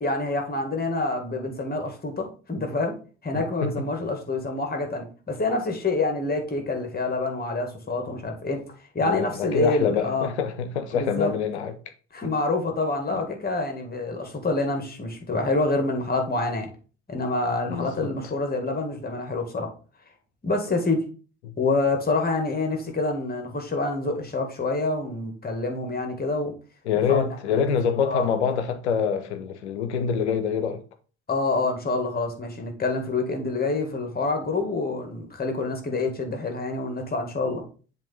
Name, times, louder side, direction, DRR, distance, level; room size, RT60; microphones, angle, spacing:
voice 1, 0.0-3.0 3.2-8.6 8.9-10.3 10.9-11.3 12.1-16.7 17.1-19.7 20.4-21.0 21.6-26.5 27.1-27.3 28.0-28.3 31.3-37.6, left 3 dB, 30° left, 1.9 m, -27 dB
voice 2, 3.3-3.9 9.0-11.7 13.1-13.2 17.7-18.1 26.8-30.8, left 7 dB, 80° left, 0.8 m, -26 dB
7.4 x 2.9 x 5.3 m
figure-of-eight pair, 45°, 33 cm